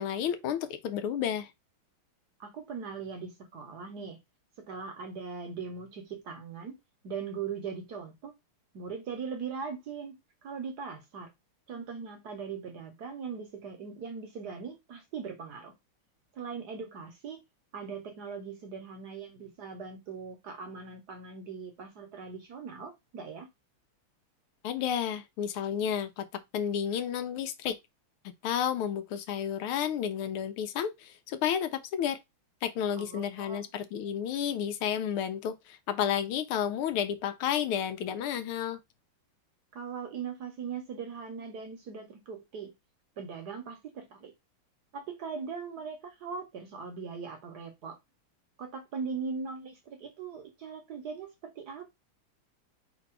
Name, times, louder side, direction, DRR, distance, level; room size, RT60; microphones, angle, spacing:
voice 1, 0.0-1.5 24.6-26.2 26.5-27.8 28.4-32.2 32.6-38.8, left 9 dB, 85° left, 1.6 m, -31 dB
voice 2, 2.4-4.2 4.6-6.8 7.0-8.3 8.7-11.3 11.7-15.7 16.3-17.4 17.7-23.5 32.9-33.6 39.7-42.7 43.2-44.3 44.9-48.0 48.6-51.9, right 5 dB, 60° right, 1.2 m, -40 dB
3.9 x 2.6 x 4.5 m
omnidirectional pair, 2.4 m